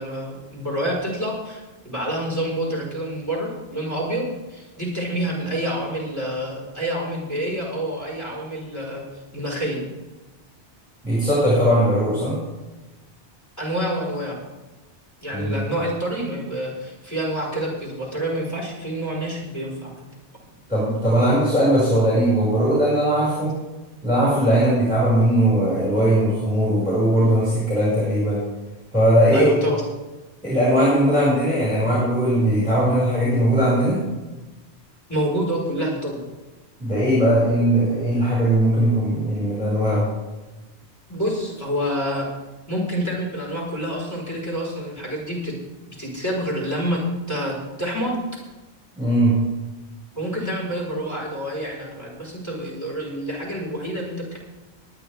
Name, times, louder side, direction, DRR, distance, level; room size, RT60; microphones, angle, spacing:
voice 1, 0.0-9.0 9.3-9.9 13.6-14.4 15.2-20.1 29.3-29.8 35.1-36.2 41.1-42.3 42.7-45.6 46.0-47.0 47.3-48.4 50.1-54.4, equal, 15° left, -5 dB, 5.1 m, -27 dB
voice 2, 11.0-12.4 15.3-15.5 20.7-23.6 24.0-28.4 28.9-29.5 30.4-34.0 36.8-40.1 49.0-49.4, right 1 dB, 5° right, -8 dB, 5.8 m, -19 dB
19.5 x 10.5 x 3.6 m, 1.1 s
omnidirectional pair, 1.2 m